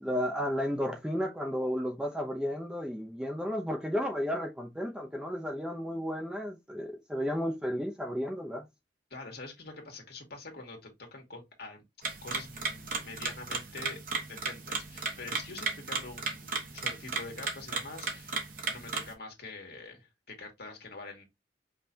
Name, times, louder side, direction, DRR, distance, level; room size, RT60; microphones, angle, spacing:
voice 1, 0.0-8.7, equal, 5° right, 0.7 m, -33 dB
voice 2, 9.1-11.8 12.2-14.0 14.3-21.2, left 3 dB, 60° left, 1.9 m, -45 dB
sound 1, 12.0-19.1, right 4 dB, 50° right, 1.1 m, -35 dB
5.5 x 3.3 x 2.8 m
head